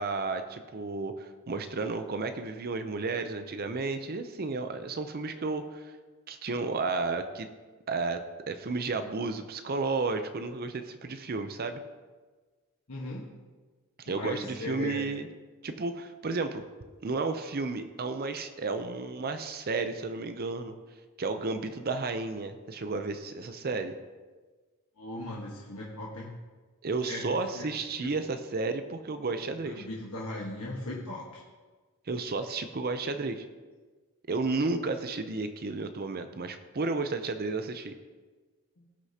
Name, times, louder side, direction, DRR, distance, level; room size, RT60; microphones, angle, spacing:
voice 1, 0.0-5.9 6.3-7.5 7.9-11.8 14.0-15.3 15.6-16.6 17.0-20.7 21.2-23.9 26.8-29.9 32.1-33.5 34.3-37.9, right 3 dB, 45° right, 8 dB, 0.6 m, -32 dB
voice 2, 12.9-13.3 14.1-15.0 25.0-26.3 27.0-27.2 27.5-27.7 28.0-28.1 29.6-31.4 38.8-38.9, left 2 dB, 75° left, -4 dB, 1.4 m, -38 dB
18.5 x 6.6 x 2.8 m, 1.4 s
head